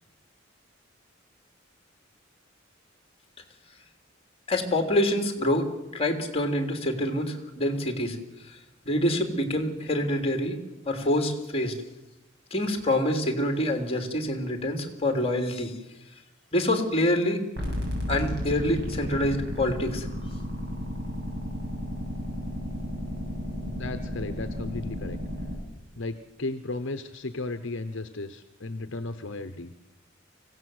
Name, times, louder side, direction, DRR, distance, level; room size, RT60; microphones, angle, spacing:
voice 1, 4.5-8.2 8.8-10.6 10.8-11.7 12.5-15.7 16.5-17.4 18.1-20.1, left 1 dB, 30° left, 5 dB, 3.2 m, -26 dB
sound 1, 17.6-25.6, left 1 dB, 60° right, 7.4 m, -33 dB
voice 2, 23.6-25.2 26.0-29.7, left 2 dB, 65° left, 9 dB, 1.1 m, -35 dB
25.0 x 17.0 x 7.9 m, 0.96 s
head